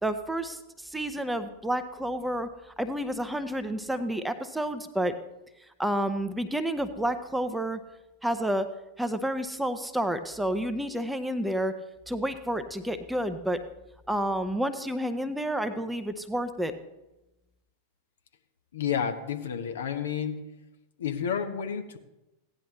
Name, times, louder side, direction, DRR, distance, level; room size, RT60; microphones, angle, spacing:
voice 1, 0.0-5.1 5.8-7.8 8.2-8.7 9.0-11.7 12.1-13.6 14.1-16.7, right 1 dB, 5° right, 9 dB, 0.7 m, -30 dB
voice 2, 18.7-20.4 21.0-22.0, left 8 dB, 65° left, 6 dB, 1.0 m, -30 dB
16.0 x 10.0 x 3.2 m, 0.97 s
figure-of-eight pair, 90°, 0 cm